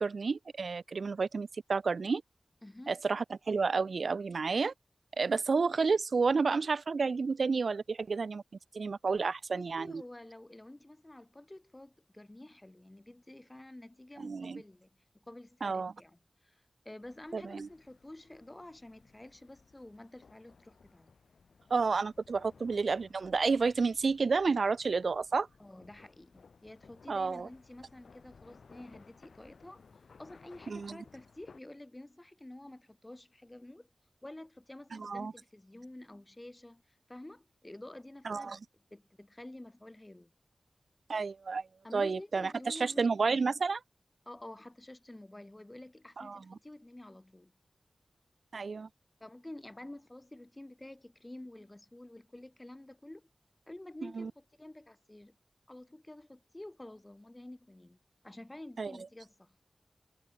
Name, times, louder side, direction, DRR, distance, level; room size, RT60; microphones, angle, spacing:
voice 1, 0.0-2.2 2.9-4.7 5.2-8.4 8.7-10.0 14.2-14.6 15.6-15.9 17.3-17.7 21.7-25.5 27.1-27.5 30.7-31.0 34.9-35.3 38.2-38.6 41.1-41.7 41.9-43.8 46.2-46.4 48.5-48.9 54.0-54.3 58.8-58.9, right 4 dB, 75° right, 1.1 m, -30 dB
voice 2, 2.6-3.0 9.5-21.1 25.6-29.9 30.2-33.9 34.2-38.6 38.9-40.3 41.8-43.1 44.3-47.5 49.2-53.3 53.7-55.4 55.7-58.0 58.2-59.6, left 1 dB, 20° left, 2.2 m, -50 dB
sound 1, 17.0-31.6, left 5 dB, 90° left, 3.3 m, -60 dB
wide cardioid pair, 95°, 0 cm